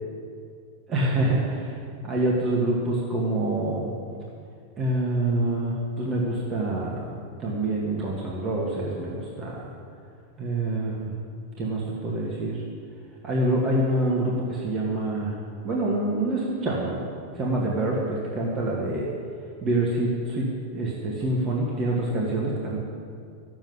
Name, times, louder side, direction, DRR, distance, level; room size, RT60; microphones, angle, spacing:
voice 1, 0.9-1.8 2.0-3.9 4.8-7.1 7.4-9.7 10.4-11.1 11.6-12.6 13.2-15.4 15.6-17.0 17.4-19.1 19.6-20.5 20.7-22.8, right 1 dB, 25° right, -3 dB, 2.0 m, -26 dB
14.5 x 7.6 x 9.8 m, 2.3 s
supercardioid pair, 160°, 0 cm